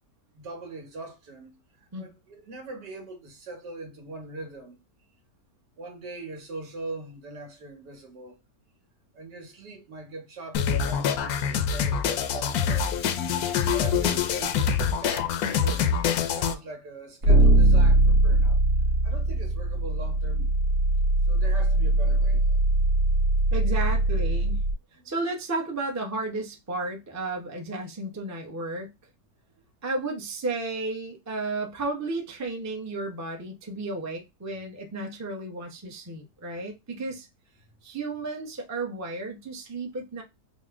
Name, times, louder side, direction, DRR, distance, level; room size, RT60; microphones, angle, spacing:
voice 1, 0.3-4.8 5.8-8.4 9.1-12.9 13.7-14.7 15.0-18.6 19.0-20.5 21.2-22.6 24.9-25.1, right 2 dB, 80° right, 2.0 m, -41 dB
sound 1, 10.5-16.5, left 7 dB, 70° left, 1.0 m, -25 dB
sound 2, 17.2-24.7, right 2 dB, 50° right, 1.6 m, -21 dB
voice 2, 23.5-24.6 25.0-28.9 29.8-37.3 37.8-40.2, right 2 dB, 20° right, 0.5 m, -33 dB
4.1 x 2.2 x 3.4 m
omnidirectional pair, 1.8 m